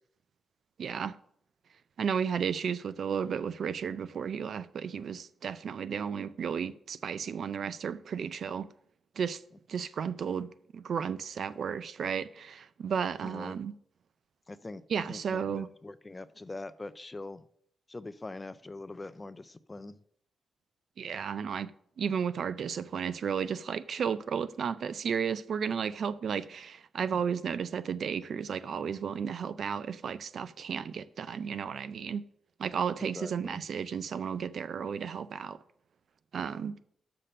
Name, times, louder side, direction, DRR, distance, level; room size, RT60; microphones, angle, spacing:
voice 1, 0.8-1.2 2.0-8.7 9.2-9.4 9.7-13.7 14.9-15.7 21.0-21.7 22.0-32.2 32.6-35.6 36.3-36.8, right 7 dB, 60° right, 0.4 m, -33 dB
voice 2, 13.2-13.6 14.5-14.8 15.1-17.4 17.9-19.9 27.1-27.2 33.0-33.6, left 2 dB, 20° left, 0.4 m, -43 dB
6.7 x 5.8 x 6.5 m
wide cardioid pair, 130°, 0 cm